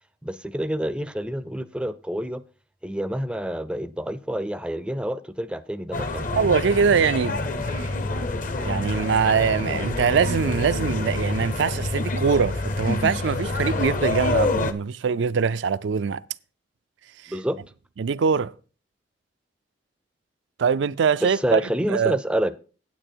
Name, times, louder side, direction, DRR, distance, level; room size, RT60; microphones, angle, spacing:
voice 1, 0.2-2.4 2.8-6.6 17.3-17.6 21.2-22.5, equal, 5° right, 0.4 m, -28 dB
sound 1, 5.9-14.7, left 2 dB, 50° left, 0.7 m, -27 dB
voice 2, 6.3-7.4 7.7-7.9 8.6-16.2 18.0-18.5 20.6-21.6 21.9-22.2, right 6 dB, 90° right, 0.4 m, -23 dB
9.0 x 8.4 x 4.5 m
head